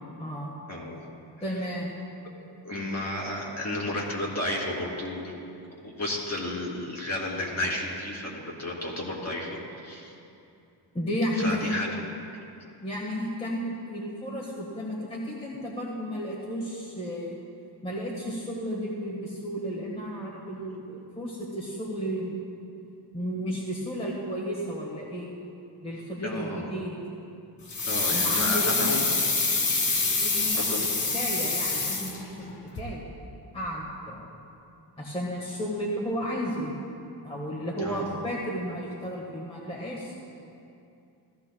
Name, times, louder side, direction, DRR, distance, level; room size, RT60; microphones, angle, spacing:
voice 1, 0.1-0.5 1.4-1.9 10.9-11.9 12.8-17.4 17.8-22.4 23.1-25.3 25.8-27.0 28.1-29.1 30.2-30.9 31.1-32.5 32.8-33.1 33.5-34.2 35.0-36.8 37.2-40.2, equal, 15° left, -4 dB, 1.5 m, -33 dB
voice 2, 0.7-1.0 2.6-5.3 5.8-10.1 11.4-11.9 26.2-26.7 27.8-29.0 30.5-30.9 37.8-38.1, left 1 dB, 35° left, -3 dB, 2.7 m, -32 dB
sound 1, 27.7-32.5 32.8-32.9, left 3 dB, 65° left, 1.9 m, -26 dB
15.5 x 14.0 x 2.3 m, 2.7 s
wide cardioid pair, 110°, 44 cm